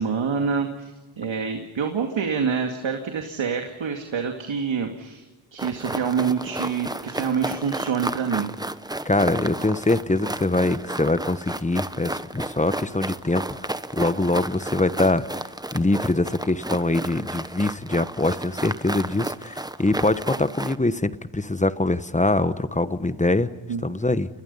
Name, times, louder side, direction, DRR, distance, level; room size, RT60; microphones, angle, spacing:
voice 1, 0.0-5.2 5.5-8.5 23.7-23.8, right 6 dB, 70° right, 4 dB, 2.4 m, -26 dB
sound 1, 5.6-20.8, right 1 dB, 10° right, 1.0 m, -32 dB
voice 2, 9.0-15.5 15.7-23.5 23.8-24.3, left 2 dB, 15° left, 13 dB, 1.2 m, -23 dB
29.5 x 22.0 x 5.6 m, 1.2 s
cardioid pair, 70°, 48 cm